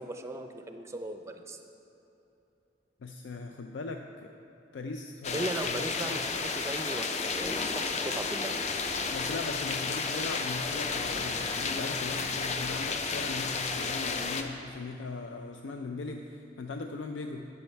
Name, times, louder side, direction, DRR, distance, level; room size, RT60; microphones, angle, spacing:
voice 1, 0.0-1.6 5.3-8.5, right 1 dB, 15° right, 6 dB, 0.4 m, -37 dB
voice 2, 3.0-4.3 4.7-6.2 9.1-17.5, left 3 dB, 90° left, 4 dB, 0.4 m, -39 dB
sound 1, 5.2-14.4, left 4 dB, 40° left, 0.5 m, -32 dB
11.0 x 6.3 x 4.5 m, 2.9 s
head